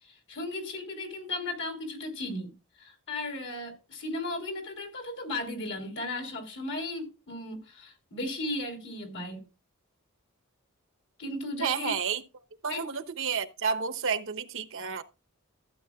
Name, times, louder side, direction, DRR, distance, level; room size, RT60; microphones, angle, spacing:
voice 1, 0.0-2.5 2.8-9.4 11.2-11.9 12.7-12.8, left 2 dB, 60° left, 3.4 m, -36 dB
voice 2, 11.6-12.2 12.6-15.0, right 6 dB, 65° right, 0.9 m, -30 dB
15.0 x 8.4 x 2.4 m
head